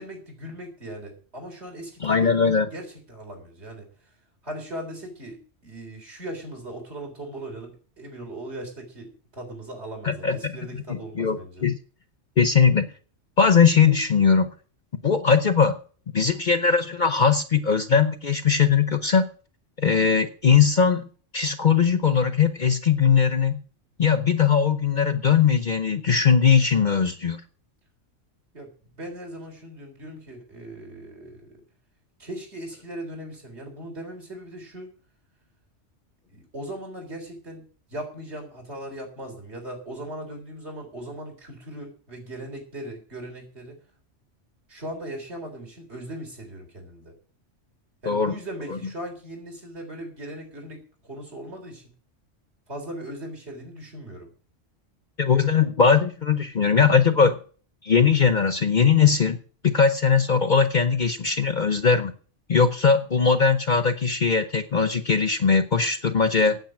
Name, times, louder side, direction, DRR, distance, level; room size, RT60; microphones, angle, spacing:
voice 1, 0.0-2.3 2.6-3.9 4.4-11.7 28.5-31.6 32.2-34.9 36.3-37.6 37.9-43.8 44.7-47.1 48.0-51.8 52.7-54.3, right 1 dB, 60° right, 2 dB, 4.1 m, -38 dB
voice 2, 2.0-2.7 10.0-10.5 10.9-11.8 12.4-12.9 13.4-14.5 15.0-15.8 16.1-19.2 19.8-21.0 21.3-23.6 24.0-27.4 48.1-48.3 55.2-57.4 57.8-59.4 59.6-62.1 62.5-66.6, left 6 dB, 45° left, 10 dB, 0.8 m, -20 dB
9.1 x 8.1 x 8.7 m, 0.42 s
omnidirectional pair, 1.3 m